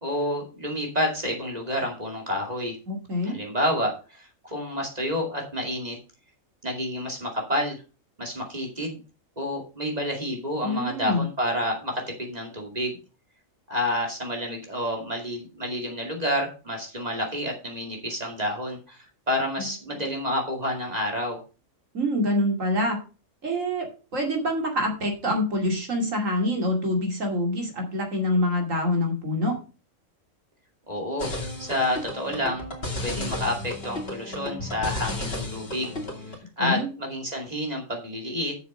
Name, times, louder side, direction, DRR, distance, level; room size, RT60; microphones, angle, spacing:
voice 1, 0.0-2.8 3.2-6.0 6.6-7.8 8.2-9.0 9.4-13.0 13.7-21.4 30.9-32.6 33.0-35.9 36.6-38.5, equal, 30° right, 0 dB, 2.6 m, -29 dB
voice 2, 2.9-3.4 10.6-11.2 19.6-19.7 21.9-23.0 23.4-23.9 24.1-29.5 36.6-36.9, left 1 dB, 85° right, 2 dB, 2.9 m, -25 dB
sound 1, 31.2-36.4, left 1 dB, 50° left, 2.8 m, -33 dB
8.2 x 6.7 x 5.4 m, 0.33 s
omnidirectional pair, 1.3 m